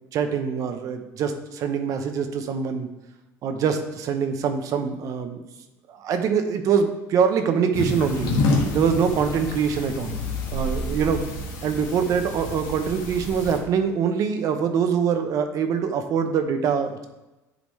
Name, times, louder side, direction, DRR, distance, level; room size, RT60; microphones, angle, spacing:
voice 1, 0.1-2.9 3.4-5.4 5.9-8.3 8.7-10.2 10.5-11.2 11.6-17.1, right 6 dB, 50° right, 7 dB, 0.8 m, -24 dB
sound 1, 7.7-13.6, left 2 dB, 70° left, 1.6 m, -28 dB
10.5 x 4.0 x 3.2 m, 1.0 s
cardioid pair, 135°, 7 cm